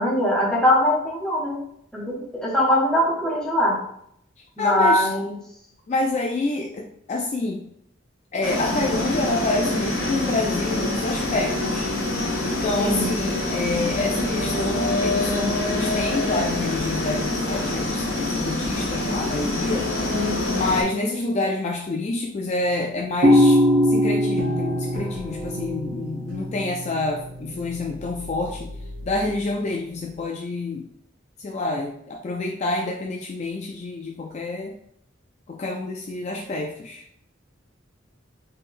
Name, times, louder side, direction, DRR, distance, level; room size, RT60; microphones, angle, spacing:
voice 1, 0.0-1.6 1.9-3.8 4.6-5.3 12.8-13.1 20.0-20.5, left 1 dB, 5° left, -4 dB, 0.8 m, -22 dB
voice 2, 4.6-5.1 5.9-7.6 8.3-11.9 12.4-19.9 20.5-28.7 29.0-30.9 31.4-34.7 35.5-37.0, left 2 dB, 35° left, 0 dB, 0.3 m, -27 dB
sound 1, 8.4-20.8, left 2 dB, 75° left, 1.2 m, -25 dB
sound 2, 23.2-29.3, equal, 80° right, 0.9 m, -23 dB
3.7 x 3.2 x 2.5 m, 0.71 s
head